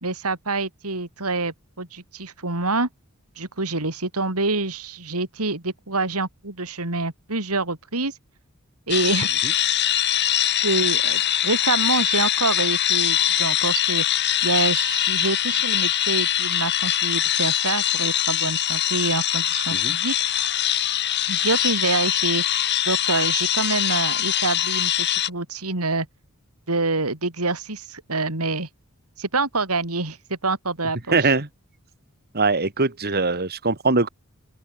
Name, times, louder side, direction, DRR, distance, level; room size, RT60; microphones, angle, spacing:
voice 1, 0.0-2.9 3.4-8.1 8.9-9.3 10.6-14.0 14.4-20.1 21.3-22.4 22.9-26.1 26.7-28.7 29.2-31.3, right 3 dB, 80° right, 4.3 m, -26 dB
sound 1, 8.9-25.3, left 11 dB, 50° left, 2.7 m, -22 dB
voice 2, 31.1-31.5 32.3-34.1, right 3 dB, 45° right, 2.4 m, -21 dB
open air
head